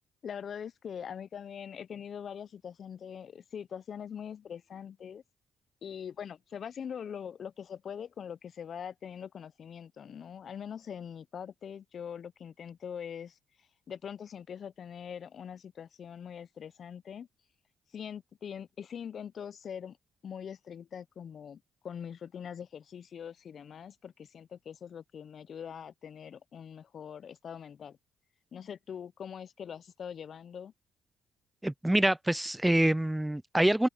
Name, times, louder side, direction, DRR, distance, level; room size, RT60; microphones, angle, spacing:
voice 1, 0.2-5.2 5.8-13.4 13.9-17.3 17.9-20.0 20.2-28.0 28.5-30.7, left 8 dB, 55° left, 0.7 m, -43 dB
voice 2, 31.6-33.9, right 1 dB, 10° right, 0.4 m, -26 dB
supercardioid pair, 60°, 0 cm